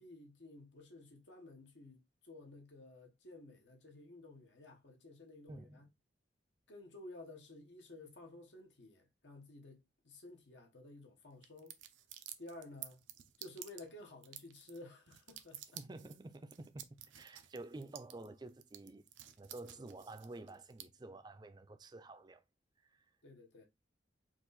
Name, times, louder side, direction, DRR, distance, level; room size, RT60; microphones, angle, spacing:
voice 1, 0.0-5.8 6.7-11.8 12.4-13.0 13.4-15.6 23.2-23.7, left 2 dB, 75° left, 1.3 m, -54 dB
voice 2, 5.5-5.9 15.8-19.1 19.4-22.4 22.8-23.1, right 2 dB, 20° right, 0.4 m, -50 dB
sound 1, 11.4-20.8, right 11 dB, 90° right, 0.6 m, -52 dB
4.6 x 2.5 x 4.0 m
head